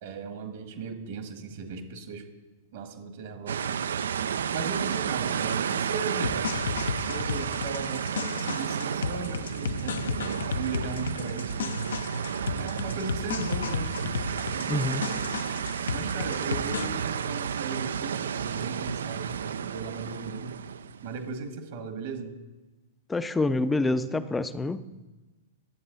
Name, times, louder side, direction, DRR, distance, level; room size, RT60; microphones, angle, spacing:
voice 1, 0.0-2.3 2.7-3.8 4.5-6.4 7.0-10.2 10.5-11.8 12.5-15.4 15.9-20.6 21.0-22.4 24.9-25.1, right 5 dB, 60° right, 1.7 m, -37 dB
sound 1, 3.5-21.3, right 7 dB, 80° right, 0.3 m, -32 dB
sound 2, 6.2-16.9, left 6 dB, 80° left, 0.5 m, -34 dB
voice 2, 14.6-15.0 23.1-24.8, left 2 dB, 10° left, 0.4 m, -27 dB
11.0 x 7.6 x 4.0 m
hypercardioid pair, 120°, 0 cm